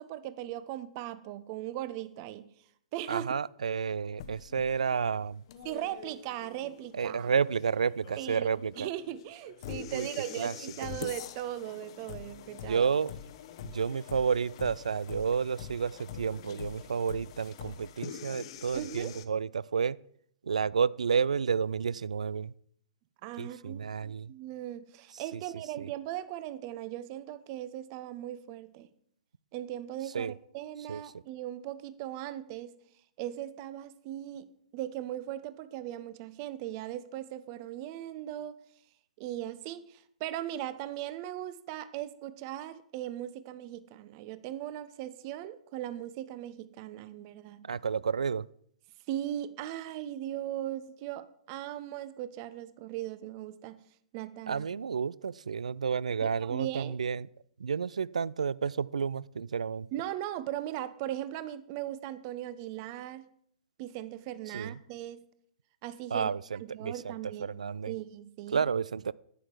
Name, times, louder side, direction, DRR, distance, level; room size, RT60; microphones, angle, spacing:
voice 1, 0.0-2.5 2.9-3.3 5.6-7.3 8.2-8.5 8.8-12.9 18.7-19.2 23.2-28.9 29.5-32.7 33.2-38.5 39.2-47.6 49.1-53.8 54.1-54.7 56.2-57.0 59.9-63.2 63.8-65.2 65.8-66.3 66.6-67.5 67.9-68.7, right 13 dB, 40° right, 14 dB, 0.8 m, -38 dB
voice 2, 3.1-5.4 6.9-8.9 9.9-10.1 10.4-10.5 10.8-11.1 12.7-13.1 13.6-20.0 20.4-22.5 23.4-24.3 25.8-25.9 30.1-30.3 30.9-31.0 47.7-48.5 54.5-57.3 57.6-59.9 64.5-64.8 66.1-67.1 67.4-67.9 68.5-69.1, right 6 dB, 70° right, 22 dB, 0.3 m, -31 dB
sound 1, 4.2-19.2, left 9 dB, 50° left, 0.9 m, -45 dB
11.0 x 9.1 x 4.7 m, 0.66 s
figure-of-eight pair, 110°, 4 cm